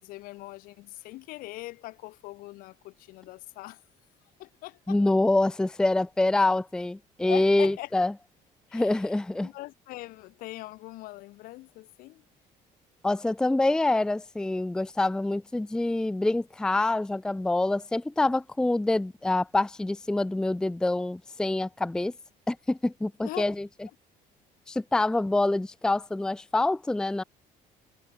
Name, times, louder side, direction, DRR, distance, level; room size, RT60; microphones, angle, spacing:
voice 1, 0.0-3.8 4.4-5.0 7.2-7.9 8.7-9.0 9.4-12.2 23.2-23.5, left 19 dB, 75° left, 6.3 m, -41 dB
voice 2, 4.9-8.1 8.7-9.5 13.0-22.1 22.5-23.7 24.7-27.2, left 2 dB, 5° left, 0.6 m, -26 dB
cardioid pair, 170°, 15 cm